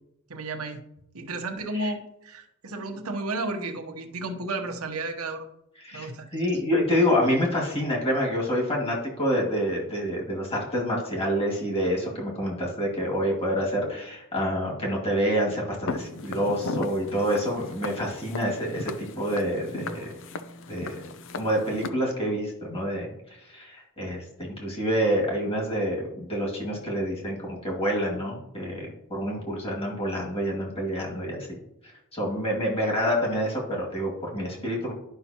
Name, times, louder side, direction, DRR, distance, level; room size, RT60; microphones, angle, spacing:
voice 1, 0.3-0.8 1.1-5.4 5.9-6.3, right 2 dB, 80° right, 5 dB, 1.0 m, -33 dB
voice 2, 5.8-20.1 20.7-21.0 21.3-23.1 23.5-31.5 32.1-34.9, equal, 25° left, -2 dB, 2.3 m, -27 dB
Walk footsteps, 15.9-21.9, left 3 dB, 60° left, 0.5 m, -37 dB
11.5 x 5.7 x 2.9 m, 0.85 s
head